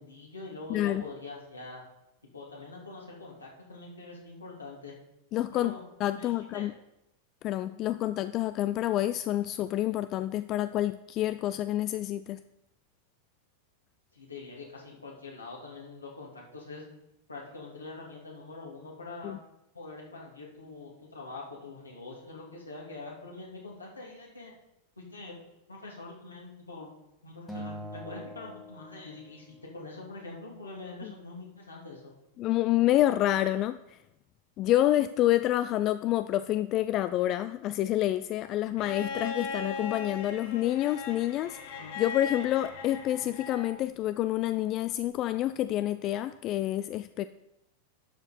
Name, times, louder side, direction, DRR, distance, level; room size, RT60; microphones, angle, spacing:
voice 1, 0.0-1.8 2.3-5.0 5.5-5.8 6.1-6.7 14.1-16.8 17.3-19.3 19.7-24.5 25.0-25.4 25.7-26.9 27.2-32.1, left 3 dB, 80° left, -3 dB, 2.8 m, -44 dB
voice 2, 0.7-1.0 5.3-6.7 7.4-12.4 19.2-19.4 31.0-31.1 32.4-34.0 34.6-41.6 42.0-47.3, left 13 dB, 35° left, 13 dB, 0.3 m, -28 dB
Acoustic guitar, 27.5-29.9, equal, ahead, 1.6 m, -43 dB
Bowed string instrument, 38.8-43.8 45.3-45.4, left 4 dB, 55° left, 1.2 m, -38 dB
11.5 x 6.8 x 4.3 m, 0.88 s
figure-of-eight pair, 90°, 0 cm